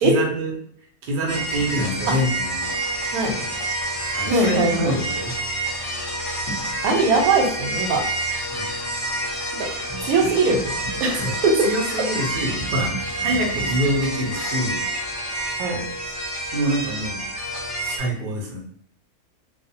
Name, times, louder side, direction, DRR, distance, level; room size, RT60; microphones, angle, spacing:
voice 1, 0.0-0.5 1.0-2.7 4.1-5.3 8.5-8.7 11.2-11.3 11.6-14.8 16.5-17.2 17.8-18.6, equal, 55° right, -1 dB, 0.6 m, -26 dB
sound 1, 1.3-18.0, right 1 dB, 30° left, 0.4 m, -28 dB
voice 2, 4.3-4.9 6.8-8.0 9.6-9.7 10.0-10.6 11.0-11.5 15.6-15.8, right 3 dB, 90° right, 1 dB, 1.1 m, -20 dB
2.5 x 2.0 x 2.7 m, 0.66 s
omnidirectional pair, 1.6 m